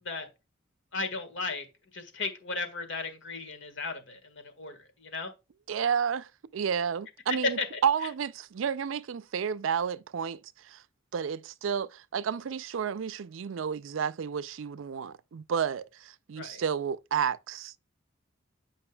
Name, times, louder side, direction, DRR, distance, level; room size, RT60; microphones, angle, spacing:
voice 1, 0.9-1.7 1.9-5.3 16.4-16.6, left 3 dB, 65° left, 1.7 m, -36 dB
voice 2, 5.7-10.8 11.1-17.8, right 7 dB, 75° right, 0.4 m, -31 dB
8.8 x 5.2 x 2.3 m
head